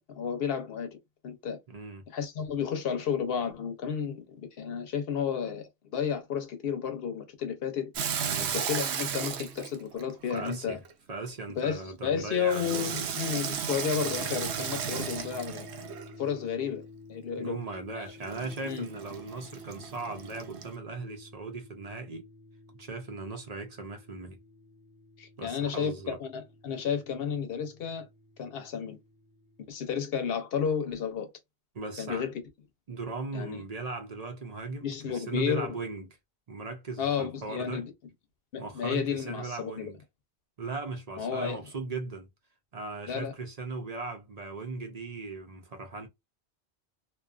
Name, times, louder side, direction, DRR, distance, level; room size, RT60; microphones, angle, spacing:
voice 1, 0.1-0.9 1.2-1.6 2.1-7.9 8.5-10.8 11.6-15.7 16.2-17.6 17.9-18.0 18.6-18.9 25.2-28.1 28.4-29.0 29.7-31.3 32.0-32.3 33.3-33.6 34.8-35.8 37.0-37.9 38.5-39.9 41.2-41.6 43.1-43.3, left 7 dB, 65° left, 0.9 m, -32 dB
voice 2, 1.7-2.0 8.2-8.5 10.3-10.8 11.1-13.1 17.4-22.3 22.8-24.4 25.4-26.2 31.7-32.3 32.9-36.1 36.5-37.9 38.6-40.0 40.6-42.3 42.7-46.1, right 3 dB, 45° right, 0.6 m, -38 dB
Water tap faucet / Sink (filling or washing), 7.9-10.9 12.5-16.2 18.2-20.8, right 7 dB, 90° right, 0.9 m, -35 dB
sound 1, 13.9-29.7, left 2 dB, 10° left, 1.0 m, -51 dB
2.5 x 2.3 x 2.4 m
omnidirectional pair, 1.1 m